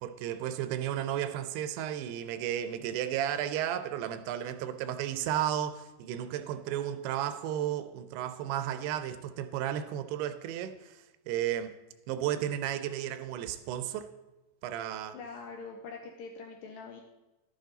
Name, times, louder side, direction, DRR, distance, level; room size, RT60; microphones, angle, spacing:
voice 1, 0.0-11.7 12.1-14.1 14.6-15.2, right 11 dB, 85° right, 2.6 m, -33 dB
voice 2, 15.1-17.0, left 4 dB, 80° left, 2.1 m, -44 dB
11.5 x 8.9 x 3.9 m
omnidirectional pair, 4.8 m